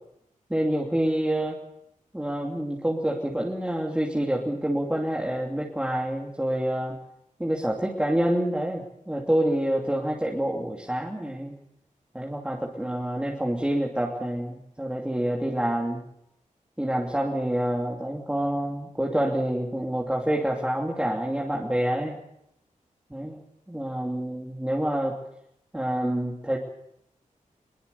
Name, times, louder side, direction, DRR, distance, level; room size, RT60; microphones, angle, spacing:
voice 1, 0.5-1.6 2.1-7.0 7.4-11.5 12.1-16.0 16.8-22.2 23.1-23.4 23.7-25.2 25.7-26.6, right 1 dB, 10° right, -1 dB, 2.9 m, -27 dB
23.0 x 22.5 x 7.0 m, 0.78 s
wide cardioid pair, 125°, 14 cm